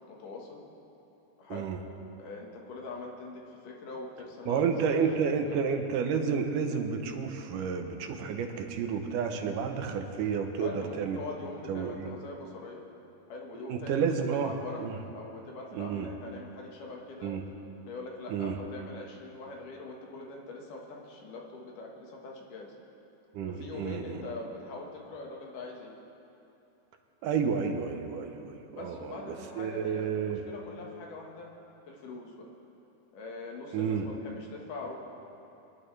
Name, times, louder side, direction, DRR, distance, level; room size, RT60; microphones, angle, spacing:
voice 1, 0.1-0.6 1.4-1.7 2.2-4.7 5.3-5.6 10.6-12.8 13.3-14.0 14.3-14.8 15.1-17.3 17.9-22.7 23.5-25.9 28.7-31.5 31.9-32.5 33.1-35.0, left 3 dB, 85° left, -1 dB, 3.1 m, -43 dB
voice 2, 4.5-11.2 11.7-12.1 13.7-15.0 15.7-16.1 17.2-17.4 18.3-18.6 23.3-24.2 27.2-30.4 33.7-34.1, right 6 dB, 90° right, 5 dB, 2.5 m, -31 dB
24.0 x 11.0 x 3.3 m, 2.8 s
omnidirectional pair, 3.6 m